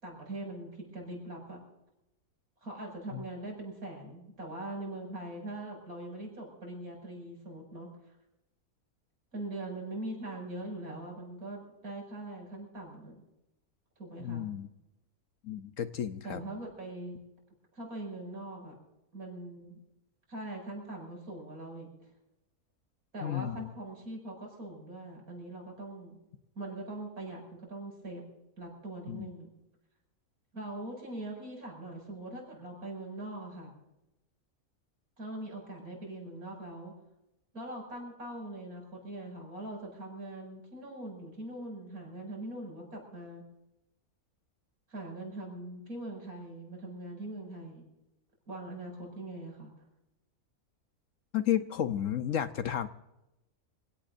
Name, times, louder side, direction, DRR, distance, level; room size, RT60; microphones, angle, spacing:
voice 1, 0.0-1.6 2.6-8.2 9.3-13.2 14.0-14.5 16.2-17.2 17.7-18.8 19.1-19.8 20.3-21.9 23.1-26.2 26.6-28.2 28.6-29.5 30.5-33.7 35.2-36.9 37.5-43.4 44.9-47.8 48.5-49.7, right 1 dB, 70° right, 0 dB, 7.0 m, -42 dB
voice 2, 14.2-14.7 15.4-16.4 23.2-23.7 29.1-29.3 51.3-52.9, left 10 dB, 65° left, 10 dB, 1.1 m, -32 dB
27.0 x 17.5 x 2.6 m, 0.91 s
omnidirectional pair, 1.6 m